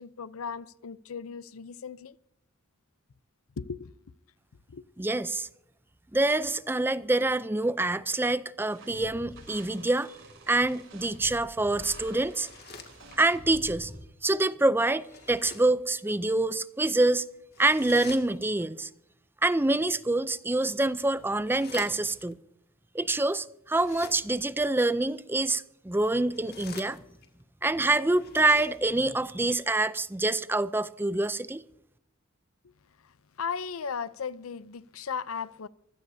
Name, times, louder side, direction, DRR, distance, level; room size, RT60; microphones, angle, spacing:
voice 1, 0.0-2.2 3.6-3.9 4.7-4.8 32.6-32.7 33.0-33.1 33.4-35.7, left 6 dB, 90° left, 0.6 m, -36 dB
voice 2, 5.0-5.5 6.1-10.2 10.5-12.5 13.2-13.9 14.2-17.2 17.6-18.9 19.4-22.4 22.9-27.0 27.6-31.6, right 2 dB, 10° right, 0.5 m, -26 dB
sound 1, 8.7-14.0, right 1 dB, 65° right, 6.1 m, -47 dB
sound 2, 12.2-13.5 15.0-15.8 17.5-18.7 20.5-22.3 23.7-24.5 26.1-27.4 28.1-29.1, left 5 dB, 50° left, 2.1 m, -48 dB
24.5 x 16.5 x 2.7 m
head